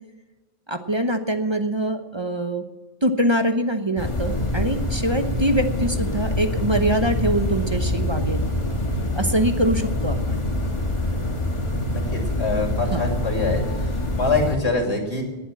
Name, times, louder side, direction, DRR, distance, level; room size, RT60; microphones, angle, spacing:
voice 1, 0.7-2.6 3.0-8.5 9.2-10.4 12.9-13.0, right 1 dB, 25° right, 7 dB, 1.0 m, -23 dB
sound 1, 4.0-14.6, left 1 dB, 30° left, 1.8 m, -25 dB
voice 2, 11.8-13.6 14.1-15.2, left 3 dB, 90° left, 2 dB, 3.2 m, -24 dB
19.0 x 8.2 x 7.7 m, 1.1 s
omnidirectional pair, 1.1 m